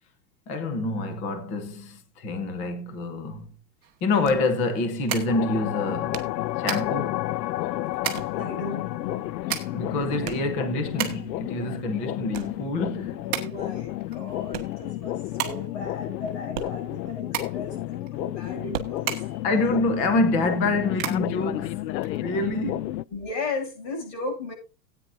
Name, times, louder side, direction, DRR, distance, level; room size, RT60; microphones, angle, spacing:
voice 1, 0.5-3.5 4.0-6.3 6.6-7.2 9.7-13.3 19.4-23.0, left 2 dB, 15° left, 0.8 m, -27 dB
sound 1, 3.7-4.8 5.2-5.3 5.5-7.3 7.5-8.5 8.8-9.3 9.6-11.3 11.7-12.7 13.5-13.6 14.1-15.1 15.3-15.4 15.7-15.8 16.1-17.5 18.0-18.8, right 9 dB, 60° right, 1.7 m, -40 dB
sound 2, 3.8-22.7, right 10 dB, 20° right, 1.5 m, -37 dB
sound 3, 5.3-23.0, left 15 dB, 80° left, 0.6 m, -31 dB
voice 2, 8.3-9.3 13.2-19.4 22.4-22.8 23.1-24.5, left 3 dB, 45° left, 7.3 m, -36 dB
17.5 x 9.2 x 2.6 m
supercardioid pair, 170°, 50 cm